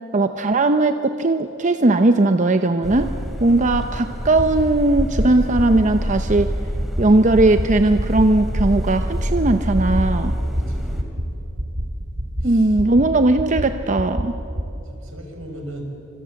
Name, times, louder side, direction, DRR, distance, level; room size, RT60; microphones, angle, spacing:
voice 1, 0.1-3.1 3.4-6.5 7.0-10.3 12.4-14.4, right 2 dB, 35° right, 8 dB, 0.7 m, -18 dB
sound 1, 2.8-11.0, equal, ahead, 3.2 m, -27 dB
sound 2, 4.4-4.6 5.0-5.2 5.6-5.8 6.2-6.4 6.8-7.0 7.4-7.6 8.0-8.2 8.6-8.8 9.2-9.4 9.8-10.0 10.4-10.6 11.0-11.2 11.6-11.8 12.2-12.4 12.8-13.0 13.4-13.6 14.0-14.2 14.6-14.7, equal, 60° right, 2.5 m, -25 dB
voice 2, 10.5-11.1 12.4-12.8 14.8-15.9, right 1 dB, 80° right, 3 dB, 5.4 m, -38 dB
29.0 x 26.0 x 7.7 m, 3.0 s
head